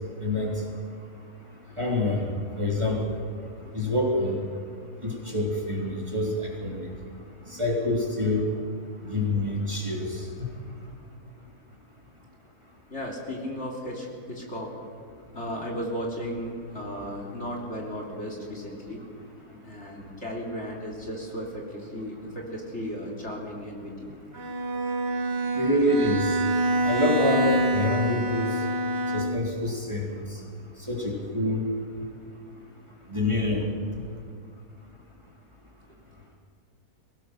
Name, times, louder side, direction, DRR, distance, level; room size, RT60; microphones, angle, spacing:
voice 1, 0.2-0.5 1.8-2.2 2.6-3.2 3.7-4.5 5.0-6.9 7.5-8.4 9.0-10.3 25.5-26.4 26.8-28.5 29.1-30.4 30.8-31.7 33.1-33.7, left 1 dB, 20° right, -3 dB, 3.5 m, -26 dB
voice 2, 12.9-14.7 15.3-19.0 19.6-24.1, equal, 45° left, -1 dB, 3.8 m, -35 dB
Bowed string instrument, 24.3-29.6, right 1 dB, 40° right, 2.1 m, -26 dB
22.5 x 18.0 x 6.5 m, 2.4 s
omnidirectional pair, 1.6 m